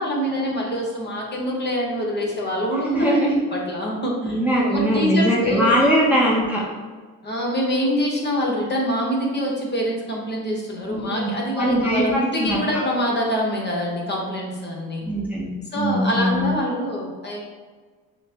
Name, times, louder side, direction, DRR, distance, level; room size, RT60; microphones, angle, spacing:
voice 1, 0.0-3.2 3.5-4.4 4.7-5.8 7.2-15.1 15.7-17.4, equal, 25° left, -2 dB, 1.1 m, -25 dB
voice 2, 2.9-3.4 4.2-6.6 10.9-11.3 11.5-12.8 15.1-15.5 15.7-16.5, equal, 5° right, -6 dB, 0.9 m, -21 dB
6.3 x 2.2 x 2.9 m, 1.4 s
supercardioid pair, 80°, 40 cm